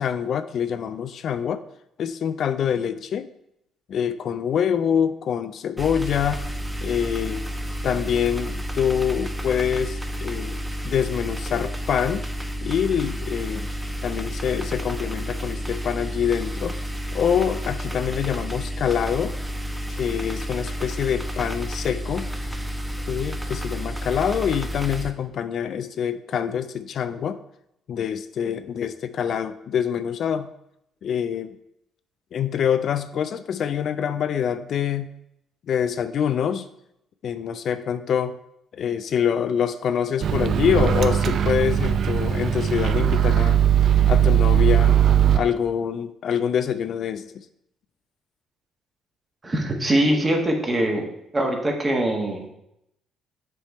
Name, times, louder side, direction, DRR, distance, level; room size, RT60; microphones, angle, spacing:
voice 1, 0.0-1.6 2.0-3.3 3.9-6.4 6.8-7.4 7.8-10.6 10.8-12.2 12.6-13.7 14.0-16.8 17.1-19.3 19.9-22.3 23.0-27.4 27.9-30.5 31.0-31.5 32.3-35.1 35.7-36.7 37.2-38.3 38.7-43.6 44.1-45.0 45.3-47.4, left 8 dB, 60° left, 11 dB, 0.3 m, -25 dB
fridge interior, 5.8-25.1, equal, 10° right, 0.7 m, -31 dB
Microwave oven, 40.2-45.4, right 9 dB, 60° right, 0.4 m, -19 dB
voice 2, 49.4-51.0 51.3-52.5, right 1 dB, 30° right, 1 dB, 1.5 m, -22 dB
7.4 x 3.4 x 4.2 m, 0.80 s
supercardioid pair, 60°, 0 cm